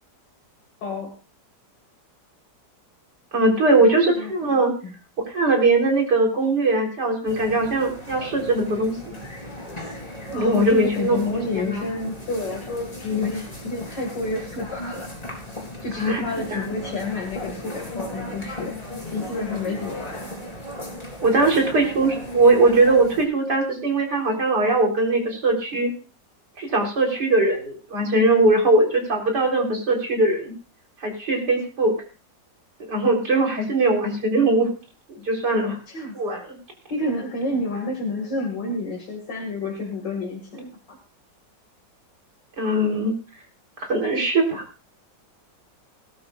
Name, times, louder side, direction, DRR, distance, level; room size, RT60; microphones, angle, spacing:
voice 1, 0.8-1.1 3.8-4.9 10.3-15.1 15.8-18.8 19.1-20.3 35.6-36.4 36.9-41.0, left 2 dB, 70° left, 0 dB, 2.8 m, -29 dB
voice 2, 3.3-4.7 5.3-9.1 10.3-11.2 11.5-11.8 15.9-16.2 16.5-16.7 21.2-25.9 26.6-30.5 31.0-31.9 32.9-34.7 35.1-35.8 36.1-36.4 42.6-43.1 43.8-44.6, right 2 dB, 65° right, 0 dB, 4.5 m, -20 dB
sound 1, 7.3-23.2, left 1 dB, 20° left, 3.8 m, -37 dB
19.5 x 12.0 x 2.4 m, 0.36 s
omnidirectional pair, 2.0 m